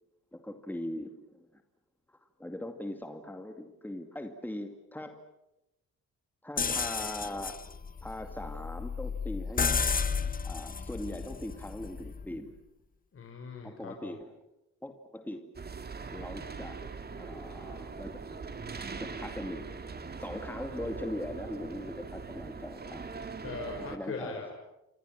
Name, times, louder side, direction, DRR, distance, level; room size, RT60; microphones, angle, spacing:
voice 1, 0.3-1.5 2.4-5.2 6.4-7.6 8.0-9.7 10.4-12.5 13.6-14.3 14.8-15.5 16.1-16.8 17.2-18.4 18.9-19.7 20.2-23.1 23.9-24.5, left 1 dB, 5° left, 6 dB, 2.3 m, -40 dB
sound 1, 6.6-12.4, left 5 dB, 30° left, 1.1 m, -33 dB
voice 2, 13.1-14.1 23.4-24.5, left 4 dB, 45° left, 1 dB, 5.4 m, -40 dB
sound 2, 15.5-24.0, right 4 dB, 30° right, 2.5 m, -41 dB
28.5 x 24.5 x 7.6 m, 0.92 s
cardioid pair, 90°, 30 cm